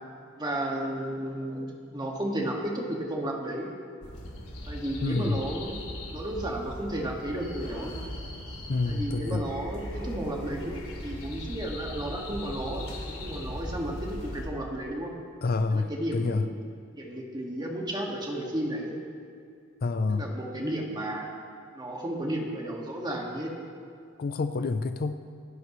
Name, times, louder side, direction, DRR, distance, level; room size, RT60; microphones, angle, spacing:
voice 1, 0.4-3.7 4.7-5.8 6.1-7.9 8.9-10.7 11.0-12.9 13.2-15.1 15.7-16.5 16.9-18.9 20.1-21.3 21.8-23.5, right 1 dB, 20° right, -1 dB, 1.9 m, -33 dB
sound 1, 4.0-14.5, left 1 dB, 75° left, 3.1 m, -39 dB
voice 2, 5.0-5.4 8.7-9.5 15.4-16.5 19.8-20.3 24.2-25.2, left 3 dB, 45° left, 10 dB, 0.5 m, -28 dB
27.0 x 12.0 x 3.2 m, 2.3 s
head